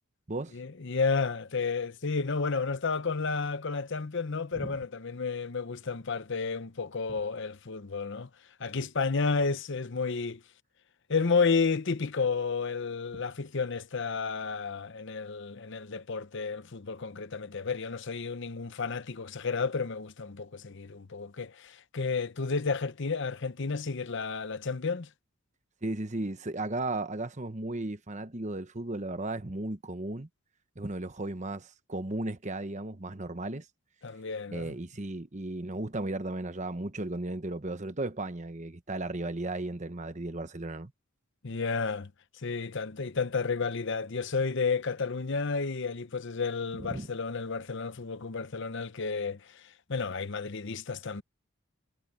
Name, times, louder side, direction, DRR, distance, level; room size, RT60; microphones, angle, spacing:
voice 1, 0.5-8.3 8.6-10.4 11.1-25.1 34.0-34.7 41.4-42.1 42.4-51.2, left 4 dB, 55° left, 0.8 m, -31 dB
voice 2, 25.8-30.3 30.8-33.6 34.5-40.9 46.9-47.1, right 2 dB, 35° right, 1.1 m, -35 dB
head